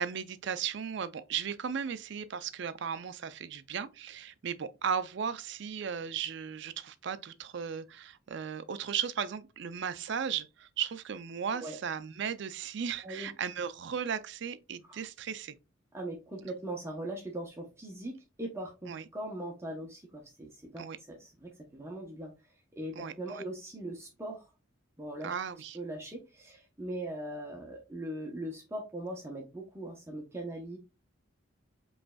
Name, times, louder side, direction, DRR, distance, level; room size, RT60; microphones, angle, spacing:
voice 1, 0.0-15.6 18.9-19.0 20.8-21.0 23.0-23.4 25.2-25.8, right 7 dB, 60° right, 0.4 m, -36 dB
voice 2, 15.9-18.1 18.4-22.3 22.8-24.4 25.0-25.3 25.7-30.8, right 1 dB, 15° right, 0.8 m, -40 dB
5.1 x 3.2 x 2.3 m
head